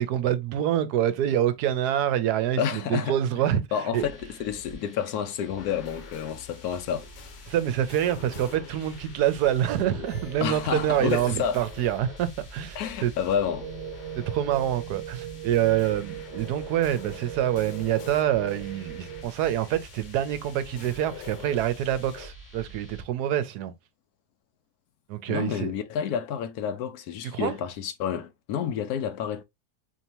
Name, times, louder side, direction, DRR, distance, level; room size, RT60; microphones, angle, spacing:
voice 1, 0.0-3.6 3.9-4.1 7.5-13.1 14.2-23.7 25.1-25.7 27.3-27.6, right 11 dB, 80° right, 1.1 m, -26 dB
voice 2, 2.6-3.1 3.7-7.1 10.4-11.6 12.8-13.7 25.3-29.4, left 8 dB, 75° left, 1.0 m, -29 dB
sound 1, 3.9-23.0, right 1 dB, 40° left, 2.4 m, -47 dB
sound 2, 5.6-22.3, left 10 dB, 90° left, 1.3 m, -47 dB
sound 3, 13.6-19.3, right 13 dB, 55° right, 0.5 m, -40 dB
4.6 x 2.8 x 2.8 m
omnidirectional pair, 1.8 m